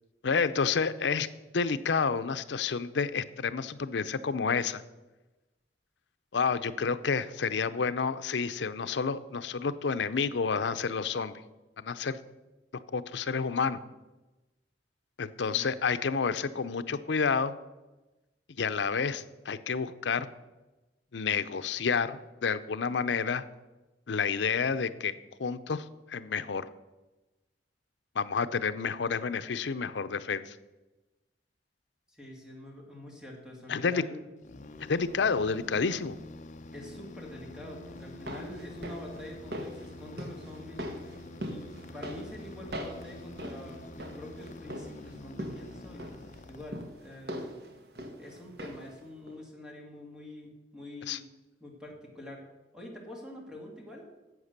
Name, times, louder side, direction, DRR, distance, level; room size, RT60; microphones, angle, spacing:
voice 1, 0.2-1.3 1.5-4.8 6.3-11.4 11.8-12.2 12.9-13.8 15.2-17.5 18.6-20.3 21.1-23.4 24.1-25.1 25.4-26.7 28.2-30.6 33.7-34.0 34.9-36.2 51.1-51.2, left 5 dB, 85° left, 13 dB, 0.6 m, -29 dB
voice 2, 32.1-34.3 35.2-35.3 36.7-46.1 46.5-47.6 48.2-51.3 51.6-52.4 52.7-54.1, left 1 dB, 5° right, -1 dB, 2.3 m, -46 dB
sound 1, 34.4-47.3, left 2 dB, 45° left, 0.6 m, -47 dB
sound 2, 38.0-49.0 49.3-49.4, equal, 60° right, 1.4 m, -42 dB
11.0 x 8.0 x 6.6 m, 1.1 s
head